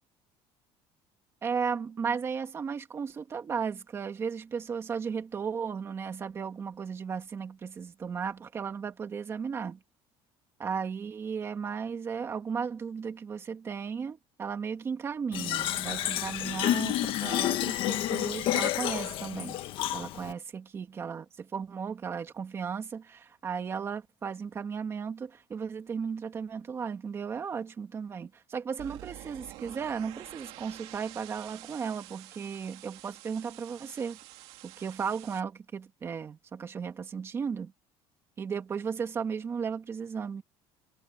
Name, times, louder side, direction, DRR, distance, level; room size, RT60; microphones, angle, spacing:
voice 1, 1.4-9.8 10.6-19.6 19.9-34.2 34.6-37.7 38.4-40.4, right 6 dB, 25° right, 2.0 m, -35 dB
Fill (with liquid), 15.3-20.3, left 14 dB, 50° left, 1.5 m, -30 dB
sound 1, 28.8-35.4, right 16 dB, 65° right, 2.2 m, -48 dB
cardioid pair, 175°, 11 cm